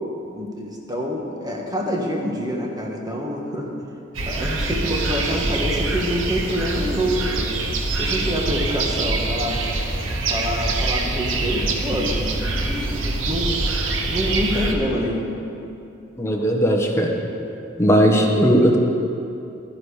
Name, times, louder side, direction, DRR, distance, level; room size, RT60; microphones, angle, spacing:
voice 1, 0.3-3.7 4.2-7.7 8.0-9.6 10.3-13.6 14.1-15.3, equal, 20° right, -1 dB, 1.5 m, -26 dB
sound 1, 4.1-14.7, right 2 dB, 90° right, 1.1 m, -24 dB
voice 2, 16.2-17.2 17.8-18.8, equal, 15° left, 0 dB, 1.2 m, -17 dB
12.5 x 10.0 x 5.0 m, 2.7 s
head